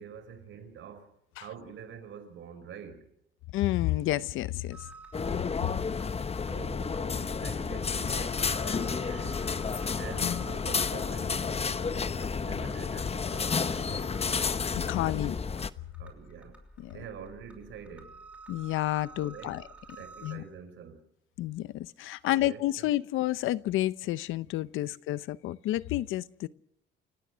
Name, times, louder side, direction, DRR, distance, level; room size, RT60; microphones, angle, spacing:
voice 1, 0.0-3.1 6.4-9.5 10.0-14.2 16.0-16.6 16.9-18.2 19.2-19.6 20.0-21.0 22.3-22.9, right 7 dB, 75° right, 5.0 m, -46 dB
voice 2, 3.5-4.9 10.2-10.4 14.7-15.4 16.8-16.9 18.5-19.6 20.2-20.4 21.4-26.5, left 15 dB, 90° left, 0.7 m, -30 dB
sound 1, 4.7-20.4, right 2 dB, 5° right, 5.7 m, -51 dB
sound 2, 5.1-15.7, left 5 dB, 30° left, 1.0 m, -31 dB
29.5 x 16.5 x 6.2 m
cardioid pair, 90°, 20 cm